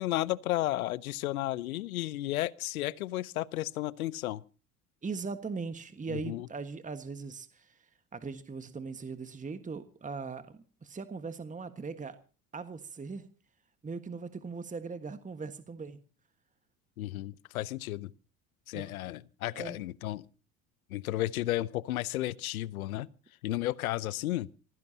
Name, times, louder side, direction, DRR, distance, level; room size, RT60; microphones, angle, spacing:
voice 1, 0.0-4.4 6.1-6.5 17.0-18.1 18.7-20.3 20.9-23.1 23.4-24.5, left 15 dB, 85° left, 0.7 m, -33 dB
voice 2, 5.0-12.2 12.5-13.3 13.8-16.0 18.7-18.9 19.5-19.8, right 4 dB, 20° right, 1.5 m, -40 dB
27.0 x 15.5 x 2.8 m
hypercardioid pair, 70°, 41 cm